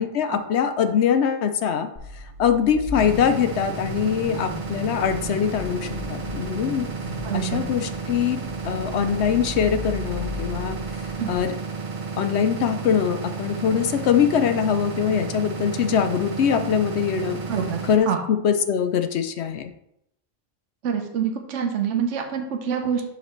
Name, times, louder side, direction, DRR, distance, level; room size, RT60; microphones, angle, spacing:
voice 1, 0.0-1.9 2.1-6.9 7.3-10.8 11.3-11.5 12.2-17.4 17.8-19.7, left 8 dB, 65° left, 8 dB, 0.8 m, -23 dB
Car / Idling / Accelerating revving vroom, 1.9-11.4, left 3 dB, 30° left, 1.2 m, -37 dB
sound 1, 2.9-18.0, right 4 dB, 45° right, 0.4 m, -32 dB
voice 2, 7.2-7.6 11.2-11.3 17.5-18.2 20.8-23.0, right 7 dB, 75° right, 4 dB, 1.1 m, -26 dB
10.5 x 4.1 x 3.0 m, 0.79 s
omnidirectional pair, 1.3 m